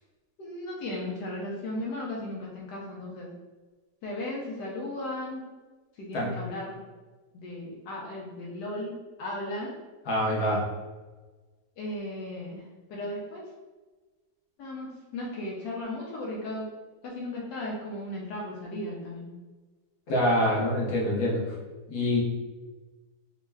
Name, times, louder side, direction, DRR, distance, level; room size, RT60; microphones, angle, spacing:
voice 1, 0.4-3.3 4.0-5.4 5.9-6.8 7.3-9.7 11.8-13.5 14.6-16.7 17.0-19.3, left 1 dB, 90° left, -3 dB, 1.3 m, -36 dB
voice 2, 10.1-10.7 20.1-21.4 21.9-22.2, left 1 dB, 65° left, -4 dB, 1.4 m, -25 dB
3.5 x 2.2 x 3.2 m, 1.3 s
omnidirectional pair, 1.8 m